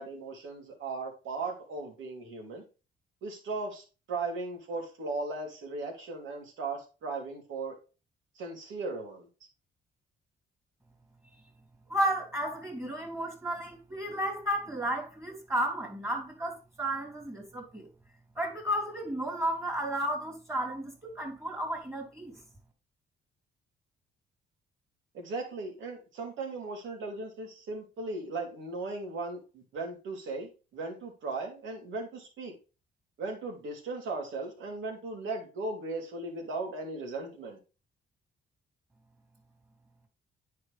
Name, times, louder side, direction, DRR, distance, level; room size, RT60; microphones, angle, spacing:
voice 1, 0.0-2.6 3.2-7.8 8.4-9.3 25.1-32.5 33.2-37.6, right 3 dB, 75° right, 3.0 m, -37 dB
voice 2, 11.9-17.9 18.3-22.4, right 1 dB, 15° right, 2.8 m, -33 dB
9.5 x 4.6 x 3.4 m
cardioid pair, 90°, 20 cm